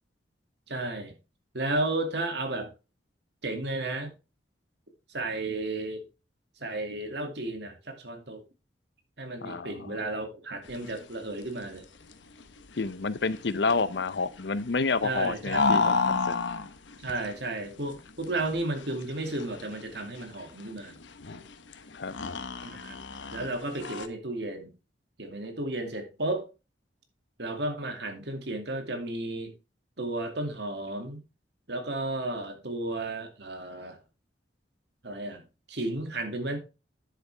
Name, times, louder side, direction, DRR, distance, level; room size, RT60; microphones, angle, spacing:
voice 1, 0.7-1.1 1.5-2.7 3.4-4.2 5.1-6.0 6.6-8.4 9.2-11.9 15.0-16.2 17.0-21.0 22.6-23.0 23.3-24.7 25.2-26.5 27.4-29.5 30.0-31.2 31.7-34.0 35.0-35.4 35.7-36.6, right 2 dB, 65° right, 2.3 m, -33 dB
voice 2, 9.4-10.0 12.8-16.3 21.9-22.1, left 4 dB, 65° left, 0.7 m, -29 dB
sound 1, 10.6-24.1, left 4 dB, 85° left, 1.0 m, -33 dB
10.0 x 7.9 x 3.4 m
head